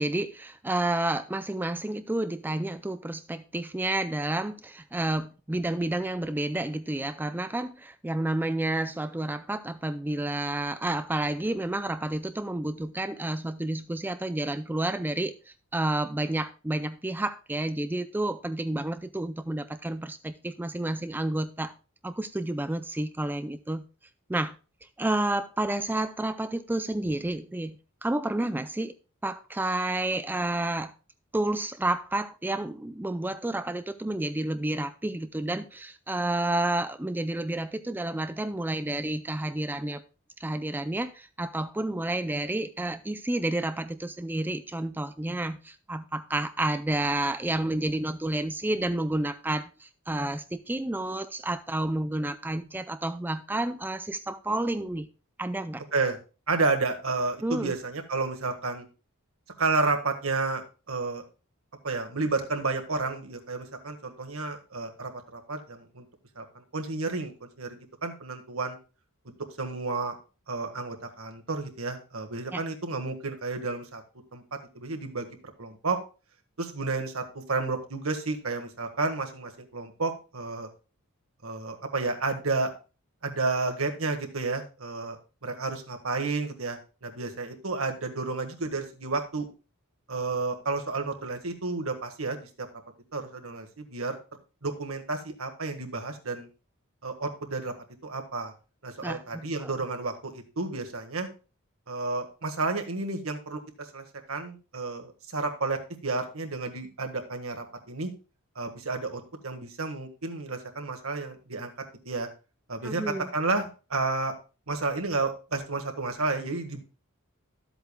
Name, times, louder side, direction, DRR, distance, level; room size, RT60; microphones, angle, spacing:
voice 1, 0.0-15.3 15.7-21.7 22.0-23.8 24.3-24.6 25.0-28.9 29.2-30.9 31.3-40.0 40.4-55.1 55.4-55.8 57.4-57.7 72.5-72.6 99.0-99.7 112.8-113.3, right 1 dB, 10° right, 11 dB, 0.4 m, -30 dB
voice 2, 56.5-58.9 59.6-61.2 61.8-66.0 66.4-68.8 69.6-70.2 70.5-74.0 74.3-74.4 74.8-75.3 75.6-76.0 76.6-80.7 81.4-82.7 83.2-85.2 85.4-89.5 90.1-92.7 93.1-94.2 94.6-96.5 97.0-97.7 98.0-98.5 98.8-101.3 101.9-108.1 108.6-111.7 112.1-112.3 112.7-114.3 114.7-116.8, right 3 dB, 70° right, 6 dB, 1.6 m, -31 dB
13.0 x 8.0 x 2.3 m, 0.33 s
head